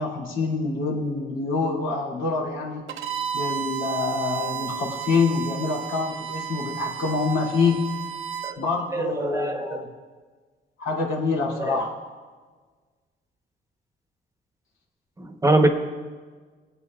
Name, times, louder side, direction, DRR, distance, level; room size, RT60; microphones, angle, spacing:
voice 1, 0.0-2.8 3.3-7.8 8.6-9.8 10.8-11.9, left 4 dB, 75° left, -3 dB, 2.6 m, -26 dB
Bowed string instrument, 2.9-8.6, right 9 dB, 85° right, 0.7 m, -32 dB
voice 2, 8.9-9.8 11.6-11.8 15.2-15.7, right 2 dB, 15° right, 5 dB, 1.0 m, -23 dB
20.5 x 8.4 x 2.4 m, 1.4 s
cardioid pair, 90°, 20 cm